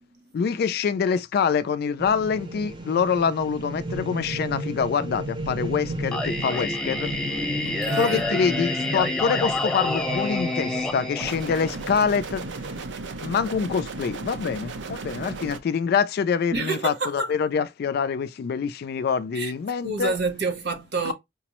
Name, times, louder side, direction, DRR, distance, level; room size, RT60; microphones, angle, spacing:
voice 1, 0.3-7.1 8.0-12.5 13.2-20.1 21.0-21.1, left 6 dB, 55° left, 0.3 m, -25 dB
sound 1, 2.0-12.8, right 1 dB, 25° right, 0.7 m, -34 dB
Singing, 6.1-12.1, left 2 dB, 5° left, 0.9 m, -28 dB
voice 2, 7.6-8.2 16.5-17.3 19.3-19.5 19.8-21.1, right 3 dB, 65° right, 0.9 m, -28 dB
sound 2, 11.2-15.6, right 3 dB, 90° right, 0.6 m, -35 dB
5.1 x 2.0 x 2.9 m
head